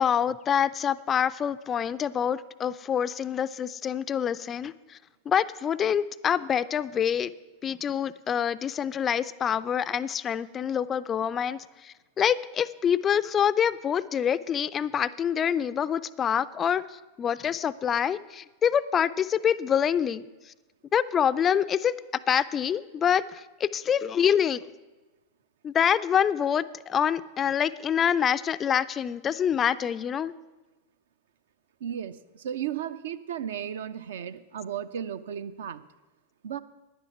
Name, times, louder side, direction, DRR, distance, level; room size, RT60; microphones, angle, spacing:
voice 1, 0.0-5.0 5.3-7.3 7.6-20.5 20.9-22.0 22.3-24.6 25.6-30.3, left 8 dB, 25° left, 16 dB, 0.3 m, -26 dB
voice 2, 31.8-35.8 36.4-36.6, right 9 dB, 60° right, 13 dB, 0.5 m, -34 dB
10.5 x 10.5 x 5.8 m, 1.1 s
figure-of-eight pair, 90°, 0 cm